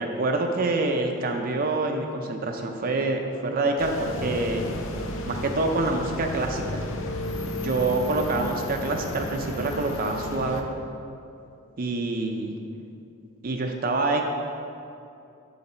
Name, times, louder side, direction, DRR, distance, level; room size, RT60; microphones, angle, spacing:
voice 1, 0.0-4.6 5.3-6.8 7.6-10.7 11.8-12.6 13.4-14.2, right 2 dB, 45° right, 3 dB, 0.5 m, -26 dB
sound 1, 3.8-10.6, left 1 dB, 60° left, 0.7 m, -33 dB
8.0 x 6.4 x 4.3 m, 2.6 s
head